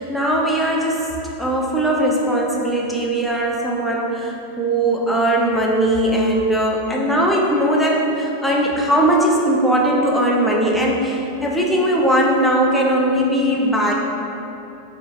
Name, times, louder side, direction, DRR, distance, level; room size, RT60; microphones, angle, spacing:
voice 1, 0.0-13.9, right 1 dB, 5° left, -3 dB, 0.4 m, -19 dB
2.4 x 2.2 x 4.0 m, 2.9 s
figure-of-eight pair, 90°, 0 cm